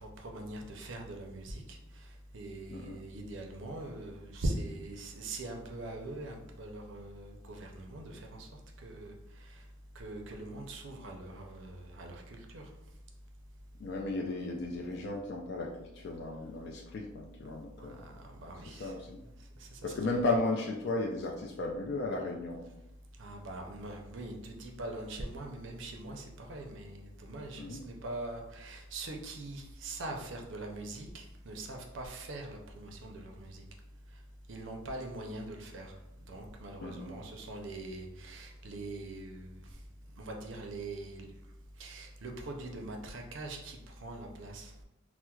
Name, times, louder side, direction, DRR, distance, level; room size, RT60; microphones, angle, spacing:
voice 1, 0.0-1.8 2.3-8.5 8.8-9.1 10.0-12.7 17.4-17.5 17.8-18.9 19.6-20.2 23.2-33.6 34.5-35.9 36.3-39.6 40.2-41.3 41.8-44.7, right 2 dB, 65° right, 2 dB, 0.5 m, -42 dB
voice 2, 13.8-18.0 18.6-19.2 19.8-22.7 27.6-27.8 36.8-37.1, left 2 dB, 55° left, 0 dB, 0.3 m, -35 dB
4.3 x 2.0 x 2.3 m, 0.91 s
head